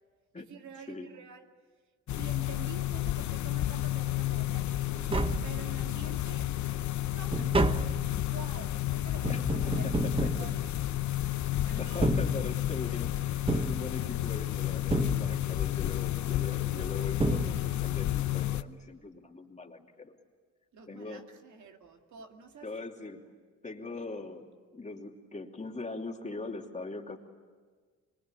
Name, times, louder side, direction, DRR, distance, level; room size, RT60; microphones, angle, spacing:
voice 1, 0.3-1.6 2.2-4.8 5.4-6.5 7.1-7.8 8.2-9.9 10.4-10.6 11.6-12.2 20.7-22.7, right 6 dB, 70° right, 4 dB, 2.4 m, -48 dB
sound 1, 2.1-18.6, left 14 dB, 70° left, 0.9 m, -31 dB
Tap, 4.7-4.8 5.0-6.1 6.5-11.3 11.9-12.9 13.5-14.4 14.9-15.7 16.8-16.9 17.2-18.0 18.3-18.4, right 2 dB, 20° right, 1.1 m, -32 dB
voice 2, 9.7-10.3 11.8-20.1 20.9-21.3 22.6-23.2 23.6-24.5 24.7-27.2, left 3 dB, 25° left, 2 dB, 2.8 m, -41 dB
25.5 x 23.0 x 9.9 m, 1.5 s
cardioid pair, 100°, 30 cm